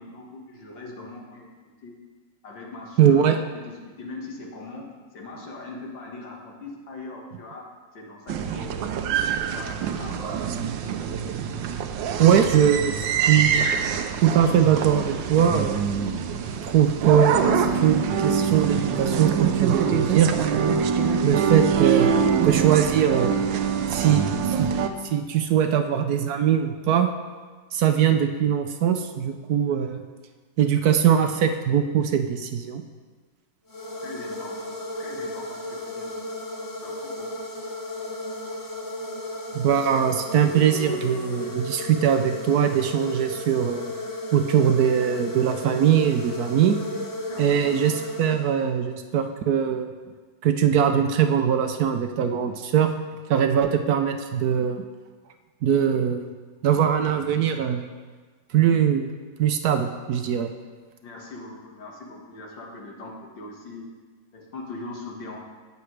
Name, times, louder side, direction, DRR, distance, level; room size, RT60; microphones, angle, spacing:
voice 1, 0.0-1.5 1.8-1.9 2.4-7.7 7.9-9.2 9.5-10.7 13.2-13.4 34.0-36.3 36.8-37.3 47.3-47.7 61.0-63.9 64.3-65.4, left 2 dB, 85° left, 0 dB, 2.3 m, -41 dB
voice 2, 3.0-3.4 12.2-13.0 13.3-13.7 14.2-15.9 16.6-20.5 21.2-22.1 22.4-23.3 23.9-24.7 25.0-27.1 27.7-30.0 30.6-32.8 39.5-43.9 44.3-46.8 47.4-49.9 50.4-52.9 53.3-54.8 55.6-56.2 56.6-57.8 58.5-59.1 59.4-60.5, right 9 dB, 70° right, 7 dB, 1.0 m, -21 dB
sound 1, 8.3-24.9, right 7 dB, 90° right, 1.4 m, -24 dB
sound 2, 33.7-48.9, left 1 dB, 30° left, 0.4 m, -34 dB
18.0 x 6.8 x 3.2 m, 1.4 s
omnidirectional pair, 1.9 m